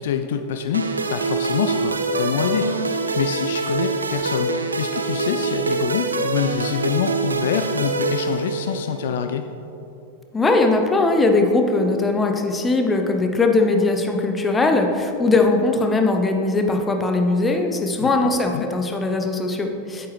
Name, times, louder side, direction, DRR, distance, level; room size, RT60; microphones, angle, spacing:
voice 1, 0.0-2.8 3.2-9.4 18.0-18.7, left 7 dB, 55° left, 7 dB, 0.3 m, -26 dB
sound 1, 0.7-9.0, right 3 dB, 75° right, 0.6 m, -25 dB
voice 2, 10.3-20.1, left 3 dB, 15° left, 4 dB, 0.7 m, -20 dB
8.4 x 7.9 x 3.2 m, 2.8 s
figure-of-eight pair, 90°, 0 cm